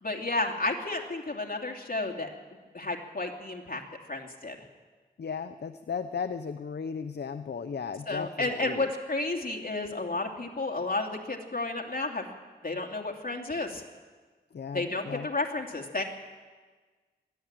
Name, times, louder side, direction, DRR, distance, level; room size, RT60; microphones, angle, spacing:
voice 1, 0.0-2.3 2.7-3.8 4.1-4.6 8.1-12.3 12.6-13.8 14.7-16.0, left 2 dB, 55° left, 1 dB, 2.8 m, -32 dB
voice 2, 5.2-8.8 14.5-15.3, left 6 dB, 75° left, 9 dB, 0.7 m, -35 dB
21.5 x 13.5 x 8.9 m, 1.4 s
wide cardioid pair, 60°, 17 cm